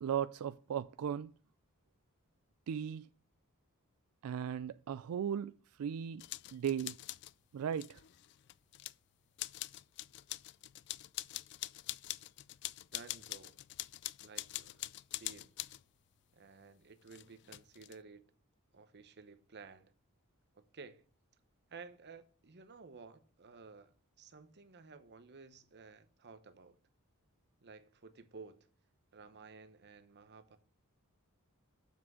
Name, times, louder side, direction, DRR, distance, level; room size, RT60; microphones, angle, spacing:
voice 1, 0.0-1.3 2.7-3.1 4.2-5.5 5.8-6.2 6.5-7.0 7.5-8.0, right 8 dB, 75° right, 0.3 m, -36 dB
sound 1, 6.2-7.3 7.7-8.9 9.4-15.8 17.1-17.9, left 16 dB, 50° left, 0.3 m, -44 dB
voice 2, 12.9-13.6 14.2-14.9 15.2-15.5 16.3-18.3 18.7-19.9 20.5-21.0 21.7-26.8 27.6-28.6 29.1-30.6, right 4 dB, 50° right, 0.9 m, -54 dB
7.4 x 6.0 x 6.3 m
head